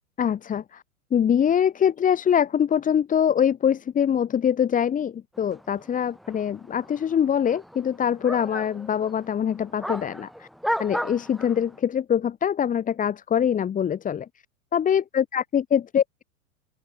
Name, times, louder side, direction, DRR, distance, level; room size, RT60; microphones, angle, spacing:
voice 1, 0.2-0.8 1.1-10.5 10.8-14.3 14.7-16.2, left 8 dB, 20° left, 2.4 m, -23 dB
sound 1, 5.4-11.8, equal, ahead, 3.5 m, -35 dB
open air
figure-of-eight pair, 95°, 43 cm